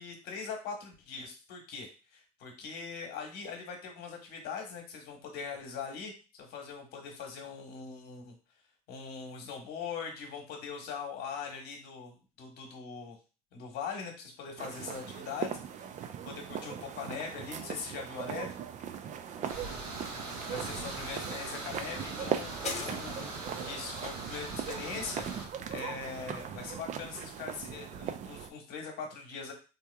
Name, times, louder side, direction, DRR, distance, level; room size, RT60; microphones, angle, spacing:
voice 1, 0.0-8.3 8.9-13.2 13.5-16.0 16.2-18.6 20.5-25.3 25.7-29.5, left 5 dB, 65° left, 3 dB, 1.2 m, -41 dB
sound 1, 14.6-28.5, right 9 dB, 40° right, 0.5 m, -39 dB
sound 2, 18.4-23.5, left 4 dB, 40° left, 0.9 m, -46 dB
voice 2, 19.3-21.0 22.0-22.5, right 2 dB, 5° right, 2 dB, 0.8 m, -55 dB
sound 3, 19.5-25.5, right 2 dB, 80° right, 1.1 m, -41 dB
3.4 x 2.9 x 2.3 m, 0.33 s
hypercardioid pair, 75°, 18 cm